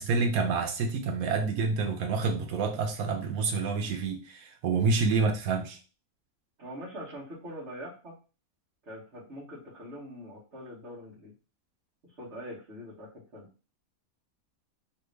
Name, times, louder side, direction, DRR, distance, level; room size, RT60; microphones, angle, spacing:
voice 1, 0.0-5.8, right 4 dB, 85° right, 1.2 m, -28 dB
voice 2, 6.6-8.1 8.8-11.3 12.0-13.5, equal, 55° right, 1.4 m, -43 dB
3.3 x 2.5 x 3.2 m
omnidirectional pair, 1.5 m